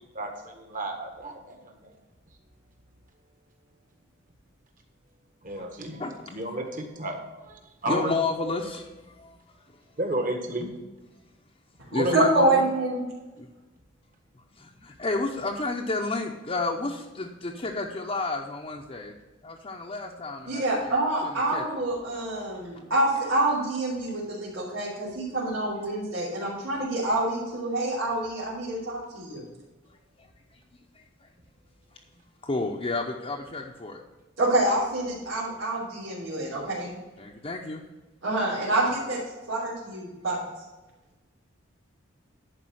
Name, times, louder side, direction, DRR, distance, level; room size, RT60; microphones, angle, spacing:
voice 1, 0.1-1.9 5.4-8.1 10.0-10.7 11.9-12.1, right 1 dB, 40° right, 4 dB, 1.5 m, -32 dB
voice 2, 6.0-6.3 7.9-9.4 11.9-12.6 13.4-13.5 14.6-19.1 19.4-20.9 21.5-21.6 32.4-34.0 37.2-37.8, left 3 dB, 30° left, -1 dB, 0.7 m, -31 dB
voice 3, 12.1-13.0 20.4-29.4 34.4-36.9 38.2-39.2 39.5-40.4, right 2 dB, 85° right, -9 dB, 3.0 m, -26 dB
11.0 x 4.8 x 6.3 m, 1.1 s
head